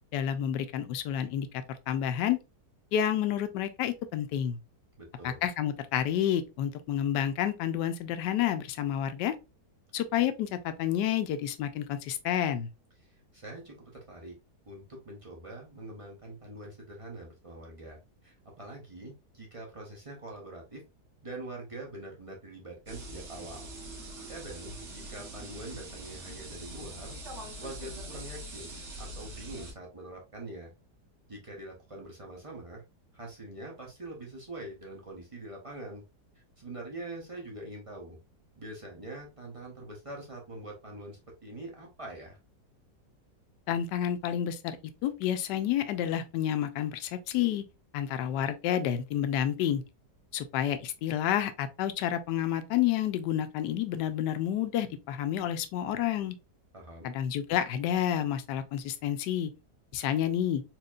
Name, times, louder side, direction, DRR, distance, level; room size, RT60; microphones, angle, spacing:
voice 1, 0.1-2.4 2.9-4.6 5.2-9.3 9.9-12.7 43.7-44.8 45.0-47.6 47.9-49.8 50.3-56.4 57.0-59.5 59.9-60.6, left 10 dB, 85° left, 1.2 m, -29 dB
voice 2, 5.0-5.4 13.0-14.3 14.7-20.8 21.2-23.7 24.0-27.2 27.6-30.7 31.3-32.8 33.1-36.0 36.6-38.2 38.6-42.4 56.7-57.1, right 2 dB, 30° right, 0.6 m, -44 dB
sound 1, 22.9-29.7, right 1 dB, 45° right, 1.4 m, -43 dB
4.4 x 2.9 x 2.4 m
omnidirectional pair, 1.8 m